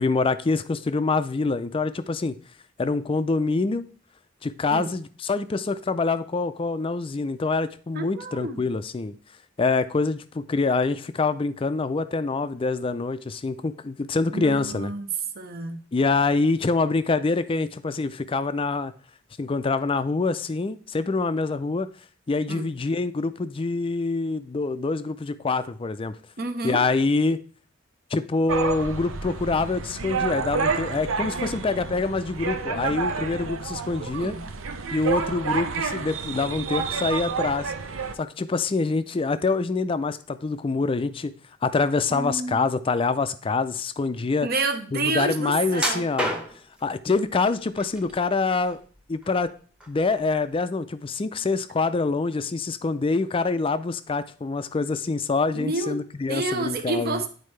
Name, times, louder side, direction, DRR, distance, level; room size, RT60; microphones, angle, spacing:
voice 1, 0.0-2.3 2.8-3.8 4.4-9.1 9.6-14.9 15.9-18.9 19.4-21.9 22.3-26.2 26.6-27.4 28.1-34.3 34.9-37.7 38.2-41.3 41.6-44.5 44.9-46.4 46.8-48.8 49.1-49.5 49.9-57.2, left 3 dB, 25° left, 0.4 m, -25 dB
voice 2, 7.9-8.6 14.3-15.1 15.4-15.8 22.5-22.7 26.4-26.8 34.0-34.4 42.1-42.6 44.4-46.1 55.5-56.0 56.3-57.3, right 3 dB, 50° right, 0.8 m, -29 dB
sound 1, 28.5-38.2, right 5 dB, 80° right, 0.7 m, -29 dB
sound 2, 45.8-46.8 47.5-48.1 48.5-49.5 49.8-50.0 50.5-50.6, right 1 dB, 5° right, 0.9 m, -30 dB
10.0 x 4.4 x 3.2 m
head